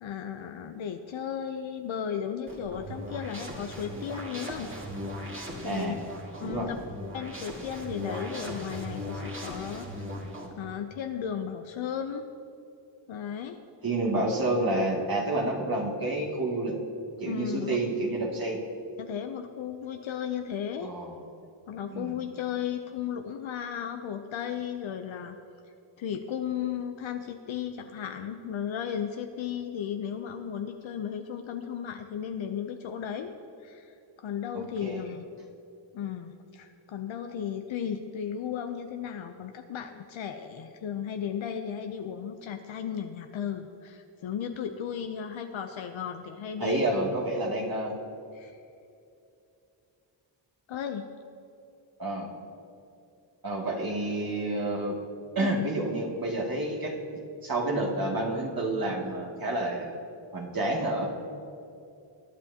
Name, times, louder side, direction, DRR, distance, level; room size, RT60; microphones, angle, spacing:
voice 1, 0.0-4.7 5.6-5.9 6.4-6.8 7.1-9.9 10.5-12.3 13.1-13.6 17.2-17.8 19.0-21.0 21.7-25.4 26.0-33.3 33.6-35.3 35.9-46.8 48.3-48.6 50.7-51.1, left 8 dB, 85° left, 5 dB, 0.7 m, -35 dB
sound 1, 2.5-10.5, equal, 25° right, 2.0 m, -38 dB
voice 2, 5.6-6.0 6.4-6.7 13.8-16.7 17.2-18.6 20.8-21.1 21.9-22.2 34.5-35.0 46.6-47.9 52.0-52.3 53.4-55.0 55.4-59.9 60.3-61.1, right 2 dB, 50° right, -2 dB, 2.3 m, -29 dB
21.5 x 9.6 x 2.8 m, 2.6 s
cardioid pair, 75°, 46 cm